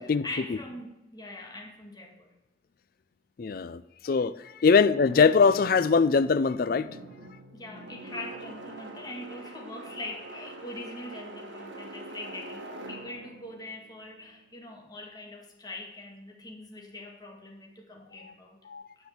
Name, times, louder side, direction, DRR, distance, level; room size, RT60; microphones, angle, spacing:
voice 1, 0.2-2.3 7.5-18.6, left 2 dB, 20° left, 0 dB, 2.1 m, -42 dB
voice 2, 3.4-6.9 18.7-18.8, left 5 dB, 50° left, 15 dB, 0.4 m, -22 dB
sound 1, 4.9-14.9, right 1 dB, 75° right, 1.8 m, -44 dB
9.9 x 6.9 x 7.8 m, 0.96 s
head